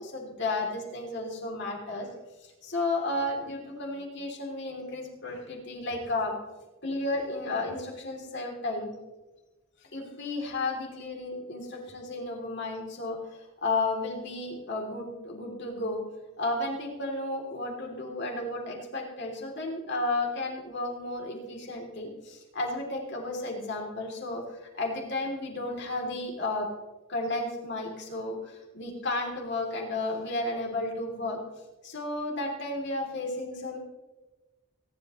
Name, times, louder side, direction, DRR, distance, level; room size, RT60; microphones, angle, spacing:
voice 1, 0.0-2.1 2.6-6.4 6.8-8.9 9.9-13.2 13.6-16.0 16.4-24.4 24.8-26.7 27.1-31.4 31.8-33.8, left 2 dB, 60° left, 0 dB, 3.2 m, -33 dB
27.0 x 11.0 x 3.2 m, 1.2 s
head